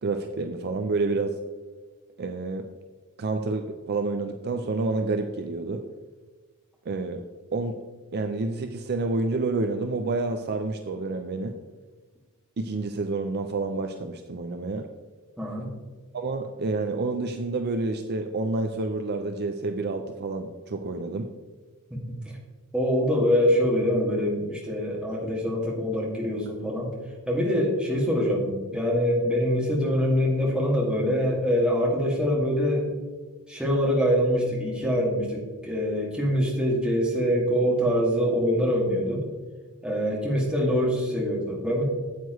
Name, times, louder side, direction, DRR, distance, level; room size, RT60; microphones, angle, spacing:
voice 1, 0.0-1.4 2.2-2.7 3.2-5.9 6.9-7.2 7.5-7.8 8.1-11.6 12.6-14.9 16.1-21.3, right 3 dB, 45° right, 6 dB, 0.5 m, -29 dB
voice 2, 15.4-15.7 21.9-22.2 22.7-26.9 27.3-32.9 33.5-39.2 39.8-41.8, equal, 5° right, -3 dB, 2.1 m, -24 dB
9.2 x 8.0 x 3.1 m, 1.4 s
head